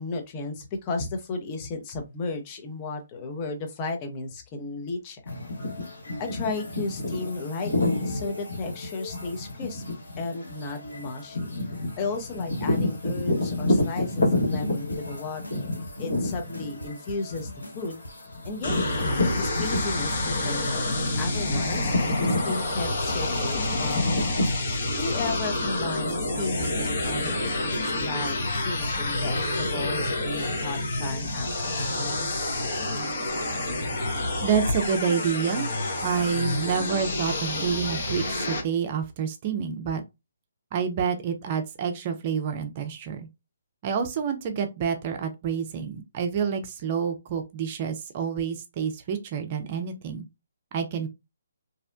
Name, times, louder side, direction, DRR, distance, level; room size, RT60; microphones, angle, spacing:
voice 1, 0.0-5.5 6.2-9.8 10.2-11.4 12.0-17.5 17.7-18.0 18.4-18.8 19.4-24.4 25.0-27.3 27.6-28.4 28.6-32.4, left 3 dB, 25° left, 0.7 m, -34 dB
sound 1, 5.3-20.4 20.8-24.6, left 2 dB, 75° left, 1.4 m, -29 dB
sound 2, 14.0-29.8, equal, 90° left, 0.8 m, -44 dB
sound 3, 18.6-38.6, left 2 dB, 50° left, 1.0 m, -28 dB
voice 2, 34.4-35.7 36.0-40.0 40.7-43.3 43.8-50.3 50.7-51.1, right 7 dB, 35° right, 0.4 m, -28 dB
2.7 x 2.1 x 2.5 m
figure-of-eight pair, 140°, 0 cm